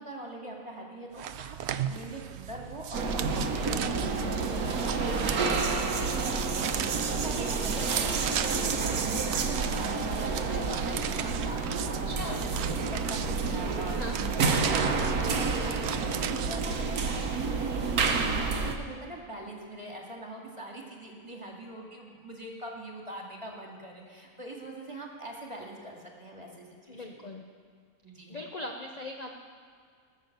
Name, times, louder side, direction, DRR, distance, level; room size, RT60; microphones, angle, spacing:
voice 1, 0.0-12.0 12.2-27.3 28.0-28.4, right 1 dB, 20° right, -1 dB, 2.0 m, -43 dB
sound 1, 1.2-16.9, right 10 dB, 65° right, 0.7 m, -38 dB
sound 2, 2.9-18.8, right 4 dB, 90° right, 1.5 m, -29 dB
voice 2, 12.1-12.5 14.0-14.4 26.9-27.4 28.3-29.3, left 1 dB, 35° left, 2 dB, 0.7 m, -39 dB
19.0 x 7.2 x 6.6 m, 2.1 s
omnidirectional pair, 1.5 m